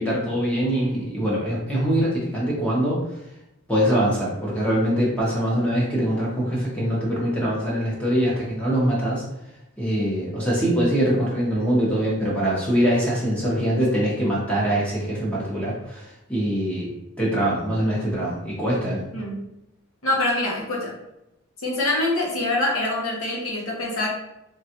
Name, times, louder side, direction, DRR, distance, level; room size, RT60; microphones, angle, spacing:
voice 1, 0.0-3.0 3.7-9.2 9.8-16.9 17.2-19.0, equal, 5° left, -6 dB, 0.7 m, -23 dB
voice 2, 20.0-20.9 21.6-24.1, left 2 dB, 80° left, -2 dB, 0.9 m, -24 dB
3.4 x 2.3 x 2.8 m, 0.86 s
head